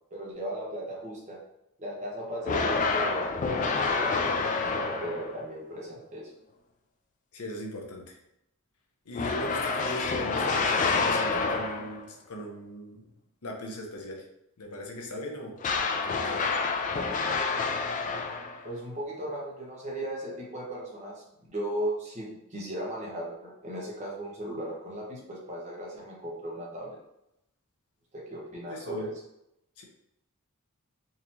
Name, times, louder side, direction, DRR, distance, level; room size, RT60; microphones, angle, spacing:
voice 1, 0.1-1.4 1.8-6.2 18.6-27.0 28.1-29.1, right 1 dB, 30° right, -4 dB, 1.1 m, -37 dB
sound 1, 2.4-5.4 9.2-12.1 15.6-18.7, left 4 dB, 35° left, 0.3 m, -28 dB
voice 2, 7.3-8.2 9.1-13.1 13.4-14.3 14.6-15.6 15.9-16.6 28.7-29.1 29.8-29.9, left 1 dB, 75° left, 0 dB, 0.8 m, -38 dB
3.9 x 2.9 x 2.7 m, 0.82 s
head